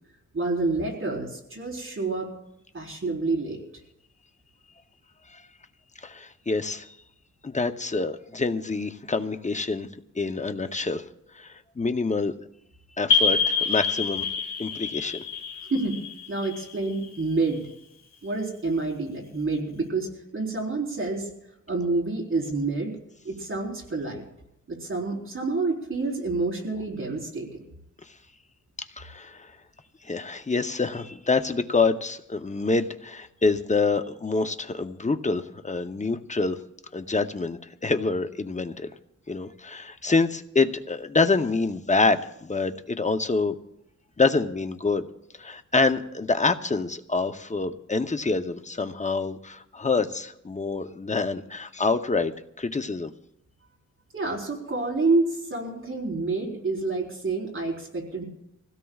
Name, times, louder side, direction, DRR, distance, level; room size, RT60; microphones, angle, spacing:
voice 1, 0.3-2.3 2.7-3.6 15.7-15.9 16.3-17.6 18.2-21.3 21.7-22.9 23.2-24.2 24.7-27.7 54.1-58.2, right 3 dB, 40° right, 0 dB, 4.2 m, -28 dB
voice 2, 6.0-6.9 7.4-9.9 10.2-11.1 11.3-12.3 13.0-14.3 14.6-15.2 29.0-29.5 30.0-36.6 36.9-38.9 39.3-43.5 44.2-45.1 45.4-53.1, left 3 dB, 25° left, 9 dB, 0.8 m, -26 dB
sound 1, 13.1-17.5, left 6 dB, 60° left, 2.0 m, -27 dB
25.0 x 16.5 x 2.4 m, 0.79 s
wide cardioid pair, 105°, 31 cm